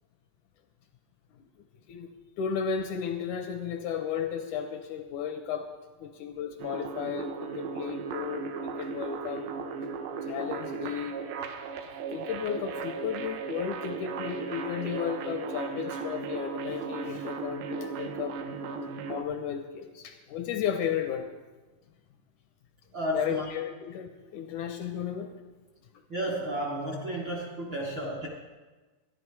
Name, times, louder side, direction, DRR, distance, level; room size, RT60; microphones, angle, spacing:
voice 1, 1.9-5.7 6.0-9.5 10.3-11.5 12.1-18.3 19.1-21.3 23.1-25.3, left 8 dB, 80° left, 6 dB, 1.8 m, -34 dB
sound 1, 6.6-19.2, right 5 dB, 80° right, 2.4 m, -36 dB
voice 2, 22.9-23.5 26.1-28.3, equal, 60° right, -4 dB, 1.2 m, -32 dB
13.0 x 11.0 x 4.7 m, 1.2 s
omnidirectional pair, 4.0 m